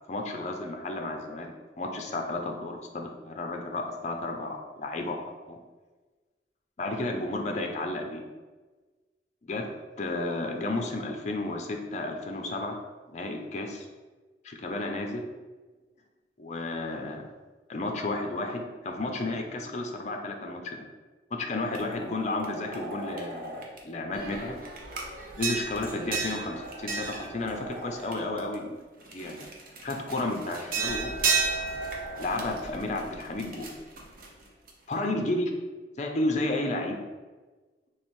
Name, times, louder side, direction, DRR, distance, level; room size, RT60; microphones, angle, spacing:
voice 1, 0.1-5.2 5.5-5.6 6.8-8.2 9.5-9.7 10.0-12.8 13.1-13.9 14.4-15.3 16.4-17.3 17.7-20.8 21.3-24.6 25.4-28.8 29.1-29.5 29.8-31.1 32.2-33.7 34.9-35.5 35.9-37.0, left 2 dB, 40° left, 3 dB, 0.5 m, -32 dB
sound 1, 21.7-23.8 24.1-28.5 29.0-34.9, right 4 dB, 55° right, 0.7 m, -34 dB
3.3 x 3.3 x 4.4 m, 1.3 s
head